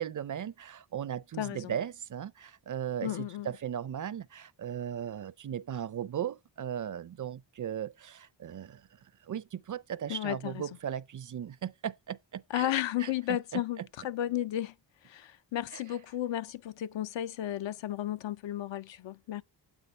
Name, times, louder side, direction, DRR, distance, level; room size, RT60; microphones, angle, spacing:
voice 1, 0.0-8.8 9.2-12.7 13.0-13.6 15.7-15.8, right 9 dB, 45° right, 0.5 m, -37 dB
voice 2, 1.4-1.8 3.0-3.5 10.1-10.6 12.5-14.7 15.0-19.4, left 12 dB, 75° left, 0.6 m, -33 dB
9.2 x 8.2 x 4.3 m
cardioid pair, 65°, 46 cm